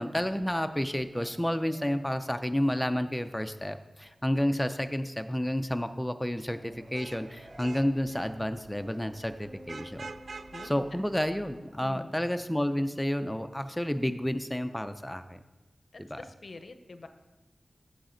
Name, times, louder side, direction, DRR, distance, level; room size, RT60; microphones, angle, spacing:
voice 1, 0.0-10.1 10.6-15.4 16.1-16.2, equal, 5° left, 8 dB, 0.4 m, -30 dB
sound 1, 1.1-4.3 4.7-5.5 6.5-9.7 10.2-11.0, equal, 15° right, 3.2 m, -58 dB
Vehicle horn car horn honking / Traffic noise roadway noise, 6.7-12.0, right 4 dB, 65° right, 0.3 m, -48 dB
sound 2, 9.4-12.0, equal, 35° right, 3.3 m, -52 dB
voice 2, 10.5-10.9 11.8-12.1 15.9-17.1, left 3 dB, 60° left, 9 dB, 0.5 m, -46 dB
9.0 x 7.1 x 3.8 m, 1.1 s
wide cardioid pair, 105°, 0 cm